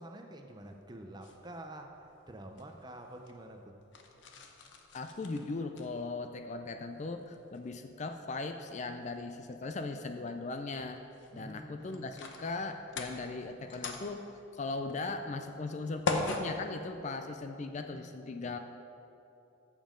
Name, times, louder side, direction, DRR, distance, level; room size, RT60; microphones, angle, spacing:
voice 1, 0.0-1.9 2.3-3.7 11.3-12.0, right 1 dB, 20° right, 4 dB, 0.6 m, -47 dB
sound 1, 0.6-17.7, left 2 dB, 65° left, 0.8 m, -44 dB
voice 2, 4.9-11.0 11.3-14.3 14.5-18.6, left 3 dB, 35° left, 7 dB, 0.4 m, -38 dB
14.0 x 7.3 x 3.8 m, 2.8 s
head